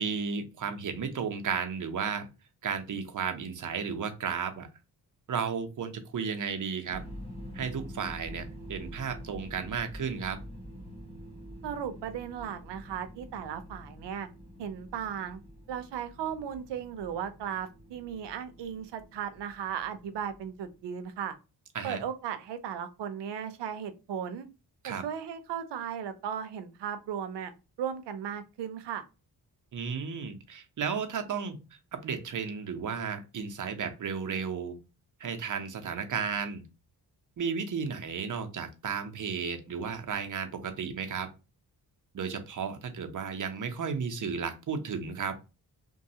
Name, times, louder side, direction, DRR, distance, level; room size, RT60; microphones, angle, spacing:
voice 1, 0.0-2.3 2.6-4.7 5.3-7.0 7.5-10.4 21.7-22.0 24.8-25.0 29.7-31.6 31.9-34.8 35.2-36.6 37.4-41.3 42.1-45.4, right 6 dB, 50° right, 0.7 m, -33 dB
sound 1, 6.9-20.9, equal, 15° left, 1.0 m, -47 dB
voice 2, 11.6-14.3 14.6-15.4 15.7-21.3 21.8-24.5 24.8-27.5 27.8-29.0, right 8 dB, 90° right, 0.6 m, -36 dB
3.0 x 2.3 x 2.7 m
cardioid pair, 80°, 41 cm